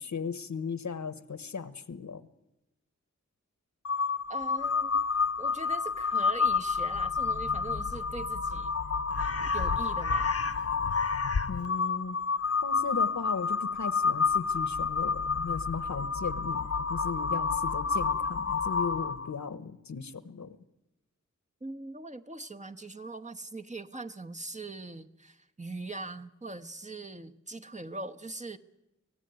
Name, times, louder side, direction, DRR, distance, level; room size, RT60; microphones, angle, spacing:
voice 1, 0.0-2.2 11.5-12.2 12.6-20.6, left 5 dB, 75° left, 14 dB, 1.2 m, -37 dB
Crow, 3.8-19.3, left 5 dB, 55° left, 0.9 m, -29 dB
voice 2, 4.3-5.0 5.4-8.7 9.2-10.3 21.6-28.6, right 2 dB, 25° right, 5 dB, 1.1 m, -41 dB
24.5 x 16.5 x 9.4 m, 0.94 s
wide cardioid pair, 75°, 29 cm